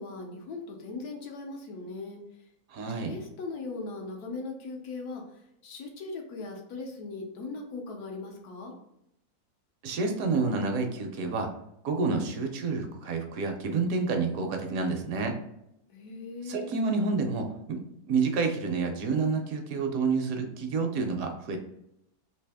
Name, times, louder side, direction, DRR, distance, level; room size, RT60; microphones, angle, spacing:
voice 1, 0.0-2.2 3.0-5.2 5.6-8.7 15.9-16.7, left 3 dB, 90° left, 2 dB, 1.3 m, -39 dB
voice 2, 2.7-3.1 9.8-11.5 11.8-15.3 16.5-17.8 18.1-21.6, right 4 dB, 70° right, 4 dB, 1.0 m, -29 dB
3.3 x 2.7 x 3.4 m, 0.80 s
omnidirectional pair, 1.6 m